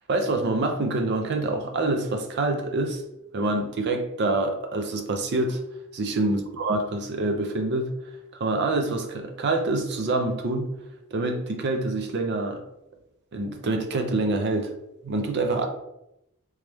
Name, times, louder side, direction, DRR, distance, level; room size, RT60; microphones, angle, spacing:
voice 1, 0.1-3.0 3.3-5.6 5.9-7.9 8.4-10.7 11.1-12.6 13.3-14.7 15.0-15.7, right 2 dB, 50° right, 5 dB, 0.5 m, -26 dB
3.2 x 3.1 x 3.3 m, 0.85 s
head